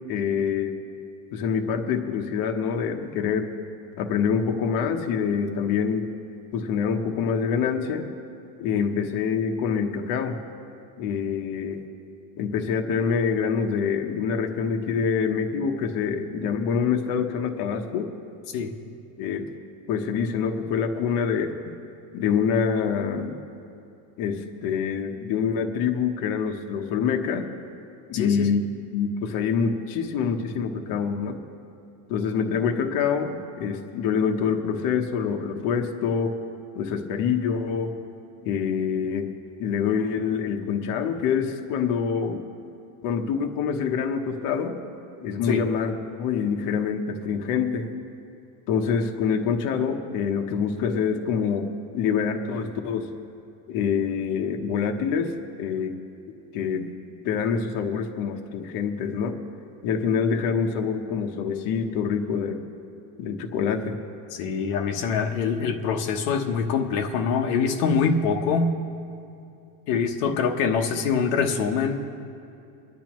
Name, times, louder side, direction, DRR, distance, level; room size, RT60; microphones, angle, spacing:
voice 1, 0.1-0.7 1.3-3.5 4.0-6.1 6.5-8.1 8.6-10.4 11.0-11.8 12.4-18.1 19.2-19.5 19.9-21.5 22.1-23.4 24.2-27.5 28.1-28.6 28.9-31.4 32.1-36.3 36.7-37.9 38.4-39.3 39.6-42.4 43.0-44.8 45.2-47.8 48.7-51.7 51.9-53.1 53.7-55.9 56.5-56.9 57.2-59.3 59.8-62.6 63.2-64.0, left 6 dB, 55° left, 3 dB, 1.1 m, -26 dB
voice 2, 28.1-28.5 45.4-45.6 64.3-68.7 69.9-72.0, left 5 dB, 75° left, 2 dB, 1.1 m, -24 dB
24.5 x 10.5 x 3.1 m, 2.6 s
cardioid pair, 155°, 42 cm